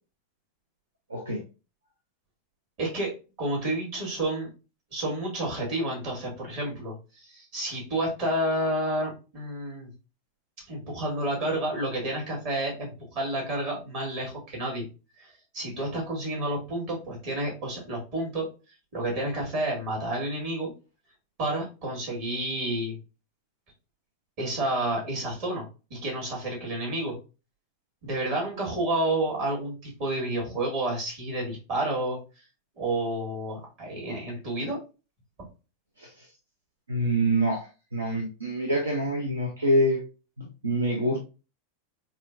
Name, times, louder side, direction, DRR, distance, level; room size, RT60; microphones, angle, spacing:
voice 1, 1.1-1.4 36.0-36.3 36.9-37.7 37.9-40.0 40.4-41.2, right 1 dB, 75° right, 0 dB, 0.7 m, -26 dB
voice 2, 2.8-3.1 3.4-4.5 4.9-9.9 10.7-14.9 15.2-18.5 18.9-20.7 21.4-23.0 24.4-25.6 25.9-27.1 28.0-32.2 32.8-34.8, right 1 dB, 45° right, -2 dB, 1.9 m, -30 dB
4.3 x 2.6 x 2.6 m, 0.32 s
figure-of-eight pair, 90°, 0 cm